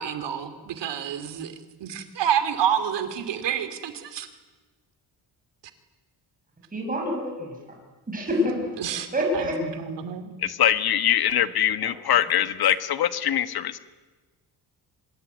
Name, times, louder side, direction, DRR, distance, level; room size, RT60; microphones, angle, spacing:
voice 1, 0.0-1.5 1.8-4.3 8.8-9.1 9.8-10.3, right 9 dB, 85° right, 10 dB, 2.9 m, -28 dB
voice 2, 6.7-7.6 8.1-8.7 9.1-9.6 11.8-11.9, left 1 dB, 20° right, 0 dB, 5.6 m, -26 dB
voice 3, 10.4-13.8, left 10 dB, 60° left, 12 dB, 1.4 m, -23 dB
24.5 x 22.0 x 9.4 m, 1.3 s
cardioid pair, 160°, 41 cm